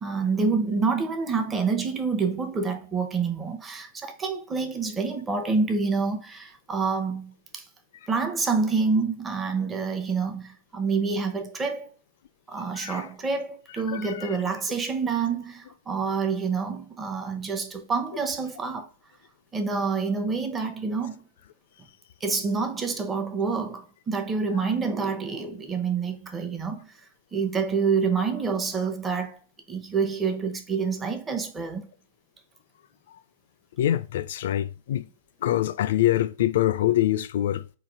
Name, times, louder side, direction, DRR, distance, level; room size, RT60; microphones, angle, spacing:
voice 1, 0.0-7.6 8.1-11.9 12.5-18.9 19.5-21.2 22.2-26.9 27.3-29.4 29.7-31.9, right 5 dB, 20° right, 0.8 m, -27 dB
voice 2, 13.9-14.3 33.8-35.0 35.4-37.6, left 13 dB, 65° left, 0.4 m, -24 dB
4.1 x 2.4 x 4.6 m
hypercardioid pair, 110°, 0 cm